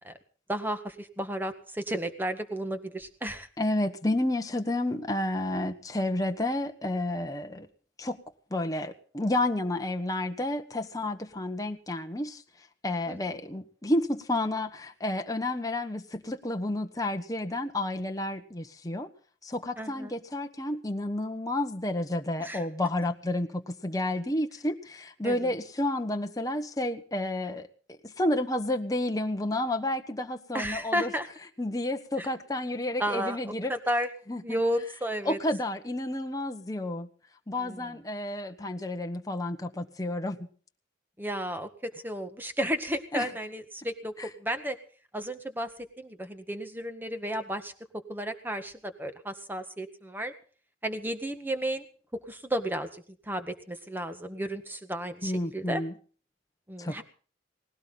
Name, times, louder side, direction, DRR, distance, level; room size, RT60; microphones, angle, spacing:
voice 1, 0.5-3.5 13.1-13.2 19.8-20.1 22.4-22.7 25.2-25.5 30.5-31.3 32.2-32.3 33.0-34.1 34.4-35.4 37.6-37.9 41.2-44.8 45.1-45.7 46.0-47.7 48.1-50.3 50.8-51.8 52.1-55.8 56.7-57.0, equal, 10° right, 8 dB, 1.7 m, -33 dB
voice 2, 3.6-7.7 8.0-8.2 8.5-12.4 12.8-19.1 19.4-27.7 28.0-31.1 31.6-33.7 34.3-34.4 35.2-37.1 37.5-40.4 43.1-43.3 44.2-44.3 55.2-55.9 56.8-57.0, left 1 dB, 20° left, 5 dB, 1.2 m, -30 dB
19.5 x 17.0 x 4.0 m, 0.42 s
head